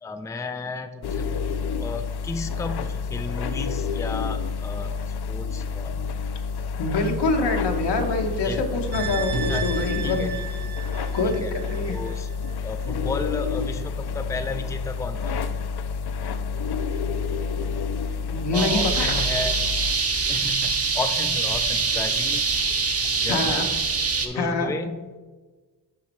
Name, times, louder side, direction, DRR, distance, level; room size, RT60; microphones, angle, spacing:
voice 1, 0.0-1.3 1.8-6.0 8.4-8.8 9.5-10.4 11.2-11.5 11.9-12.3 12.6-15.4 18.5-19.6 20.3-22.4 23.1-23.7 24.2-25.2, left 3 dB, 10° left, 8 dB, 0.4 m, -33 dB
sound 1, 1.0-19.9, left 5 dB, 70° left, 0.5 m, -29 dB
voice 2, 6.8-10.3 11.1-12.0 18.3-19.2 23.3-23.6 24.3-24.7, left 2 dB, 85° left, 3 dB, 1.1 m, -25 dB
sound 2, 8.9-12.1 12.5-12.6, right 6 dB, 65° right, 0.8 m, -33 dB
sound 3, 18.5-24.3, right 4 dB, 35° right, 0.8 m, -24 dB
11.5 x 4.2 x 3.0 m, 1.3 s
wide cardioid pair, 105°, 41 cm